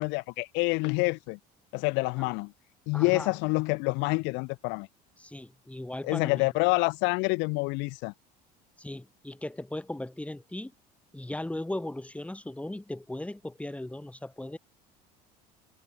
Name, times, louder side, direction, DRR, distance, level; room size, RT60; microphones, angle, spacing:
voice 1, 0.0-1.4 1.7-2.5 2.9-4.9 6.1-8.1, left 29 dB, 70° left, 0.7 m, -27 dB
voice 2, 2.9-3.4 5.2-6.5 8.8-10.7 11.1-14.6, left 1 dB, 5° left, 4.3 m, -37 dB
supercardioid pair, 95°, 19 cm